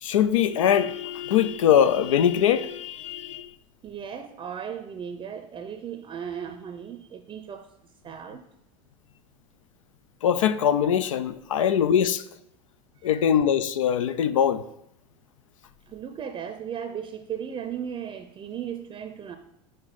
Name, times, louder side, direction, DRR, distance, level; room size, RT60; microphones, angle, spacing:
voice 1, 0.0-3.5 10.2-12.2 13.0-14.6, left 9 dB, 85° left, 0.4 m, -22 dB
voice 2, 3.8-7.7 8.0-8.5 13.1-13.3 15.9-19.4, right 8 dB, 30° right, 0.5 m, -36 dB
6.0 x 4.9 x 4.0 m
hypercardioid pair, 90°, 16 cm